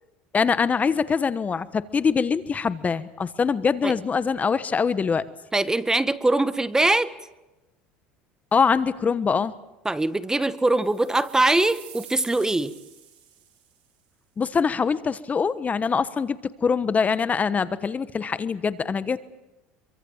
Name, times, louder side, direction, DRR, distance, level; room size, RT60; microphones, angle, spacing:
voice 1, 0.3-5.2 8.5-9.5 14.4-19.2, left 5 dB, 30° left, 15 dB, 1.2 m, -23 dB
voice 2, 5.5-7.1 9.8-12.7, right 2 dB, 10° right, 14 dB, 1.7 m, -22 dB
sound 1, 10.7-13.9, right 10 dB, 80° right, 4.8 m, -48 dB
26.0 x 24.0 x 7.4 m, 1.0 s
hypercardioid pair, 80°, 5 cm